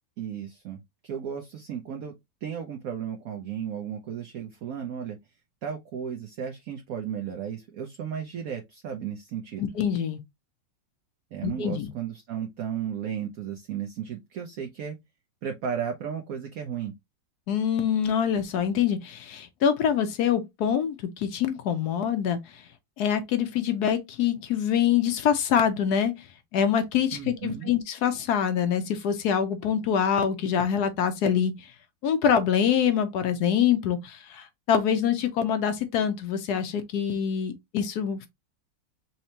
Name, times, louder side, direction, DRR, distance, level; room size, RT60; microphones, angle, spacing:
voice 1, 0.2-2.1 2.4-5.2 5.6-9.7 11.3-15.0 15.4-16.9 27.1-27.7, right 8 dB, 65° right, 0.9 m, -34 dB
voice 2, 9.6-10.2 11.4-11.9 17.5-22.6 23.0-26.3 26.5-31.7 32.0-38.3, left 8 dB, 70° left, 1.0 m, -25 dB
4.3 x 3.2 x 2.8 m
omnidirectional pair, 2.1 m